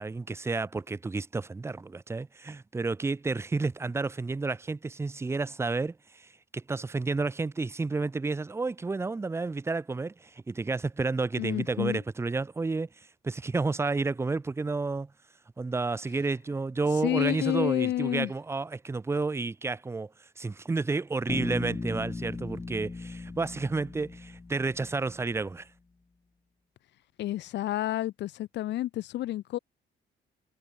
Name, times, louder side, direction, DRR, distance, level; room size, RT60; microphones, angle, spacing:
voice 1, 0.0-6.2 6.5-12.9 13.2-15.1 15.6-20.1 20.4-25.7, right 3 dB, 15° right, 0.4 m, -31 dB
voice 2, 11.4-12.0 17.0-18.3 27.2-29.6, left 14 dB, 60° left, 0.4 m, -29 dB
Bass guitar, 21.3-25.3, left 3 dB, 20° left, 0.9 m, -37 dB
cardioid pair, 90°, 20 cm